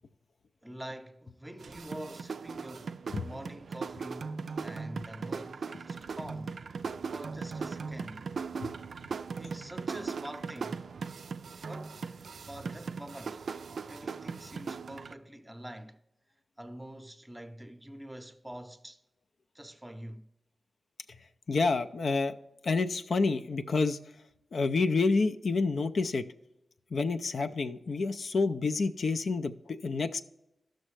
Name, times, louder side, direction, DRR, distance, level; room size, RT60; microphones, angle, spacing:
voice 1, 0.6-2.9 3.2-4.3 4.6-6.6 7.1-8.2 9.4-10.8 11.7-12.0 12.4-13.4 13.9-16.0 16.6-19.0 19.5-20.3, right 1 dB, 10° right, 0.7 m, -45 dB
sound 1, 1.6-15.1, right 5 dB, 75° right, 0.3 m, -39 dB
voice 2, 21.5-22.3 22.6-24.0 24.5-26.3 26.9-30.2, left 4 dB, 70° left, 0.4 m, -28 dB
12.5 x 6.4 x 3.2 m
wide cardioid pair, 85°, 0 cm